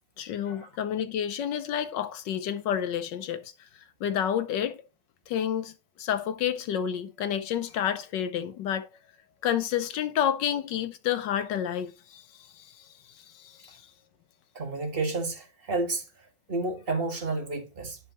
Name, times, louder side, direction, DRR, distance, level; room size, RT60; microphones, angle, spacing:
voice 1, 0.2-3.5 4.0-4.8 5.3-5.7 6.0-8.9 9.4-12.2 12.6-12.9 13.3-13.8, left 9 dB, 70° left, 1.3 m, -29 dB
voice 2, 14.5-16.0 16.5-18.0, right 3 dB, 30° right, 1.6 m, -30 dB
10.5 x 5.6 x 2.9 m
omnidirectional pair, 2.2 m